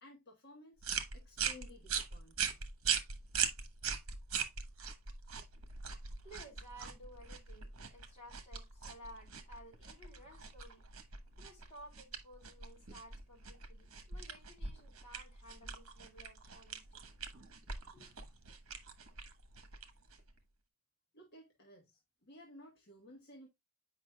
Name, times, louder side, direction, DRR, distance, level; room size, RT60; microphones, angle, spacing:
voice 1, 0.0-0.8 1.1-2.6 21.1-23.5, left 1 dB, 50° left, 1.4 m, -56 dB
sound 1, 0.8-20.4, right 7 dB, 75° right, 1.2 m, -41 dB
voice 2, 5.9-10.9 11.4-17.0 17.9-18.3, equal, 30° left, 3.3 m, -56 dB
8.5 x 5.3 x 2.2 m
head